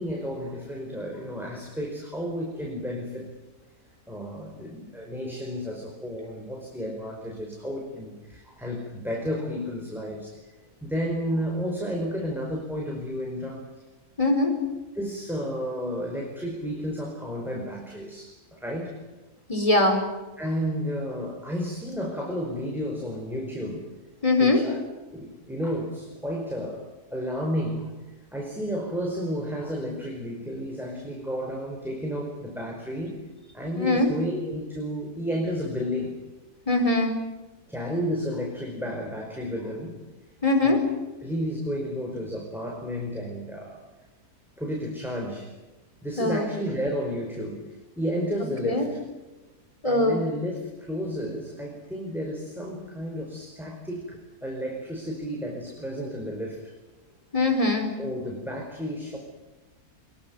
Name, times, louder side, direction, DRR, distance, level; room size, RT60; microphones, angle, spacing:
voice 1, 0.0-3.3 4.1-10.4 10.8-13.6 14.9-19.0 20.4-23.9 24.4-24.8 25.1-26.8 27.1-27.9 28.3-33.2 33.5-36.2 37.7-40.0 40.6-40.8 41.2-43.8 44.6-45.5 46.0-49.0 49.8-56.7 58.0-59.2, equal, ahead, -1 dB, 5.0 m, -32 dB
voice 2, 14.2-14.6 19.5-20.0 24.2-24.6 33.8-34.1 36.7-37.1 40.4-40.8 46.2-46.5 48.6-48.9 49.8-50.2 57.3-58.0, left 2 dB, 20° left, 5 dB, 4.7 m, -21 dB
26.0 x 22.0 x 9.4 m, 1.1 s
omnidirectional pair, 1.7 m